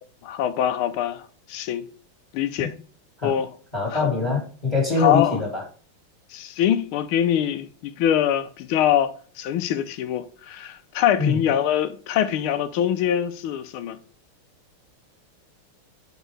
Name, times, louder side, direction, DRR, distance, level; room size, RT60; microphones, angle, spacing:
voice 1, 0.2-1.9 2.3-2.7 3.2-3.5 3.9-4.1 5.0-5.4 6.3-14.0, left 10 dB, 75° left, 1.5 m, -24 dB
voice 2, 3.7-5.6 11.2-11.5, left 4 dB, 20° left, 2.0 m, -24 dB
7.8 x 4.5 x 3.2 m
omnidirectional pair, 2.4 m